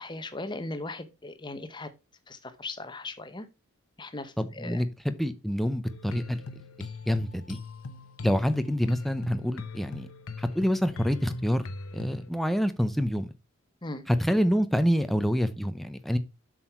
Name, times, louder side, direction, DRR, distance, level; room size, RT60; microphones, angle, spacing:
voice 1, 0.0-1.9 2.3-3.5 4.0-4.8 13.8-14.0, left 2 dB, 20° left, 1.0 m, -38 dB
voice 2, 4.4-6.4 6.8-7.6 8.2-10.1 10.4-13.3 14.1-16.2, equal, ahead, 0.7 m, -27 dB
sound 1, 5.9-12.3, left 3 dB, 80° left, 0.9 m, -40 dB
7.5 x 6.4 x 4.5 m
head